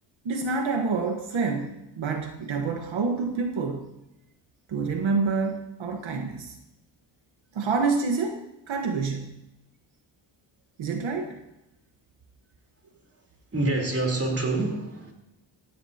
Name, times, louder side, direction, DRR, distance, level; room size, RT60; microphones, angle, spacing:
voice 1, 0.2-3.9 4.7-6.6 7.5-8.4 8.7-9.4 10.8-11.4, right 4 dB, 85° right, 4 dB, 1.4 m, -27 dB
voice 2, 13.5-15.1, right 2 dB, 30° right, 1 dB, 3.8 m, -26 dB
16.5 x 16.5 x 2.9 m, 0.91 s
cardioid pair, 65°, 46 cm